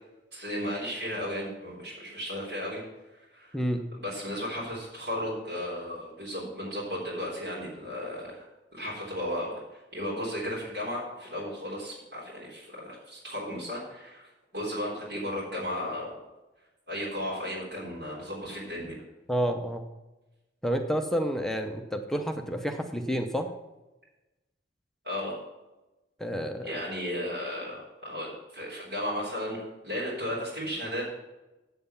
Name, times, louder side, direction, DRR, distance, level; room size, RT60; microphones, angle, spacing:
voice 1, 0.3-2.8 3.3-3.6 3.9-8.4 8.7-14.3 14.5-16.2 16.9-19.0 25.0-25.4 26.6-31.1, equal, 65° right, -7 dB, 3.7 m, -35 dB
voice 2, 3.5-3.9 19.3-19.9 20.6-23.5 26.2-26.8, equal, ahead, 4 dB, 0.7 m, -29 dB
7.9 x 7.6 x 6.9 m, 1.1 s
head